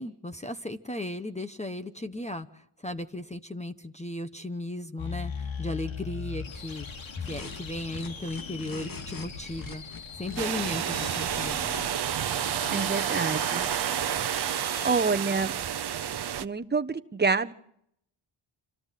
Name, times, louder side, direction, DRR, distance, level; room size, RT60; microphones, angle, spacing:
voice 1, 0.0-5.3 5.6-6.9 7.2-9.8 10.1-11.6, left 1 dB, 15° left, 9 dB, 1.1 m, -36 dB
sound 1, 5.0-15.0, left 6 dB, 65° left, 3.3 m, -40 dB
sound 2, 7.2-7.6 7.9-9.3 9.6-10.4 10.9-11.9 12.6-12.9 13.2-13.8, left 3 dB, 40° left, 2.9 m, -42 dB
sound 3, 10.4-16.5, right 9 dB, 50° right, 0.9 m, -30 dB
voice 2, 12.7-13.7 14.8-15.5 16.4-17.5, right 4 dB, 20° right, 9 dB, 1.2 m, -27 dB
27.0 x 17.5 x 7.6 m, 0.71 s
wide cardioid pair, 125°, 49 cm